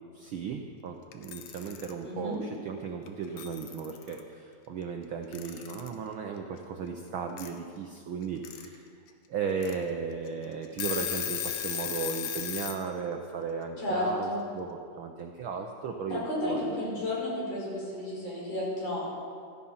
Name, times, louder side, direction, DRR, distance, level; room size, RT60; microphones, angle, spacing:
voice 1, 0.1-8.9 9.3-16.8, right 5 dB, 90° right, 3 dB, 1.1 m, -36 dB
Alarm / Clock, 1.1-1.9 3.1-3.2 3.4-4.2 5.3-5.9 7.4-7.5 8.2-8.7 9.1-9.2 9.6-9.7 10.3-10.4 10.6-12.8, left 11 dB, 90° left, 2.4 m, -35 dB
voice 2, 2.0-2.4 13.8-14.4 16.1-19.1, left 1 dB, 55° left, -5 dB, 6.1 m, -32 dB
15.0 x 14.5 x 5.6 m, 2.3 s
omnidirectional pair, 3.4 m